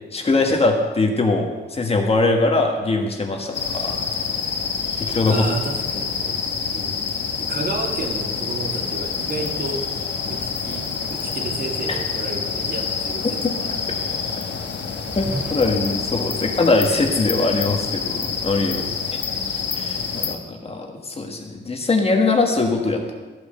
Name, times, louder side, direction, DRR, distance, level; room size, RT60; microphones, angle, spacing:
voice 1, 0.1-4.0 5.0-5.4 11.9-12.0 15.1-18.8 19.8-23.1, left 3 dB, 35° left, 3 dB, 1.5 m, -21 dB
sound 1, 3.5-20.3, left 6 dB, 70° left, 1.3 m, -27 dB
voice 2, 5.2-7.0 7.4-9.9 10.3-13.9 16.3-16.5 18.6-19.0, right 3 dB, 50° right, 3 dB, 1.6 m, -32 dB
sound 2, 14.9-16.1, right 1 dB, 10° right, 0.5 m, -32 dB
14.0 x 8.7 x 6.7 m, 1.3 s
wide cardioid pair, 175°, 19 cm